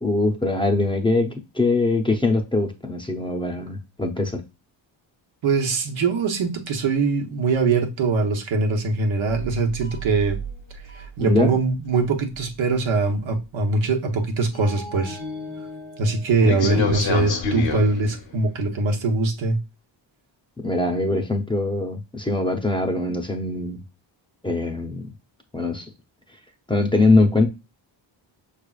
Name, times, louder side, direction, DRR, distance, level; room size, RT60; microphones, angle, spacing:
voice 1, 0.0-4.4 11.2-11.5 16.5-16.9 20.6-23.8 24.4-25.1 25.5-25.9 26.7-27.5, left 2 dB, 10° left, 0.6 m, -22 dB
voice 2, 5.4-10.4 10.9-15.2 16.0-19.6, right 3 dB, 85° right, 1.0 m, -22 dB
sound 1, 9.3-11.1 11.4-11.5 12.0-12.1 12.4-12.5 14.5-18.4, left 3 dB, 80° left, 1.4 m, -29 dB
5.7 x 3.3 x 2.3 m
cardioid pair, 100°, 45 cm